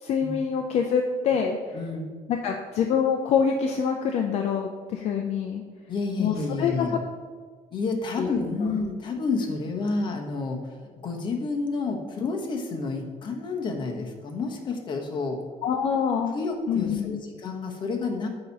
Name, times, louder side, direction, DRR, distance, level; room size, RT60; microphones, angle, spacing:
voice 1, 0.0-1.6 2.3-5.6 6.2-7.0 8.2-8.4 8.7-8.8 15.6-16.3 16.7-17.2, left 7 dB, 55° left, 3 dB, 0.5 m, -25 dB
voice 2, 1.7-2.1 5.9-7.0 7.7-10.6 11.0-15.4 16.3-18.3, left 3 dB, 35° left, 2 dB, 1.0 m, -29 dB
8.8 x 2.9 x 5.3 m, 1.5 s
cardioid pair, 150°, 13 cm